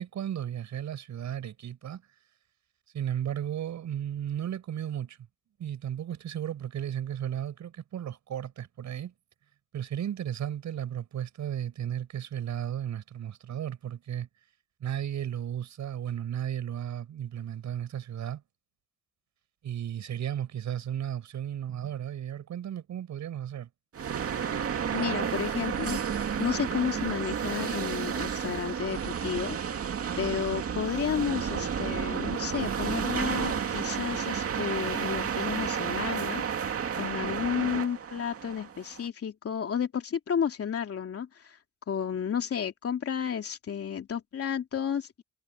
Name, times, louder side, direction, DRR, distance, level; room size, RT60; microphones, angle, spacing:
voice 1, 0.0-2.0 2.9-5.2 5.6-9.1 9.7-14.3 14.8-18.4 19.6-23.7, right 10 dB, 65° right, 6.4 m, -34 dB
sound 1, 23.9-39.1, right 7 dB, 50° right, 2.4 m, -31 dB
voice 2, 24.9-29.6 30.2-36.4 36.9-41.6 41.9-45.2, left 8 dB, 50° left, 2.8 m, -32 dB
cardioid pair, 90°, 30 cm